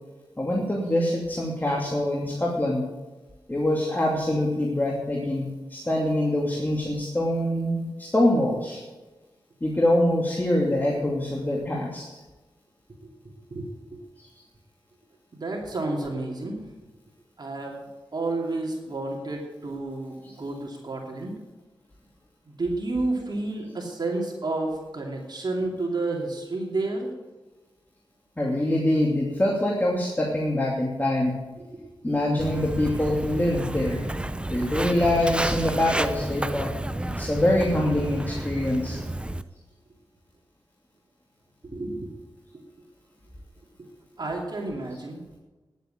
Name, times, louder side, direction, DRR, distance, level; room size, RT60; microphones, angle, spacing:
voice 1, 0.4-2.9 3.5-8.8 9.6-12.0 28.4-31.4 32.0-34.1 34.5-36.7 37.0-39.0, left 1 dB, 20° left, -3 dB, 2.5 m, -24 dB
voice 2, 13.2-13.6 13.9-14.0 15.3-16.6 17.4-17.9 18.1-21.4 22.6-27.1 31.6-31.9 41.6-42.2 43.8-43.9 44.2-45.2, right 2 dB, 55° right, 0 dB, 2.7 m, -30 dB
Walk footsteps, 32.4-39.4, right 1 dB, 10° right, 0.6 m, -31 dB
10.5 x 8.2 x 7.7 m, 1.2 s
cardioid pair, 55°, 9 cm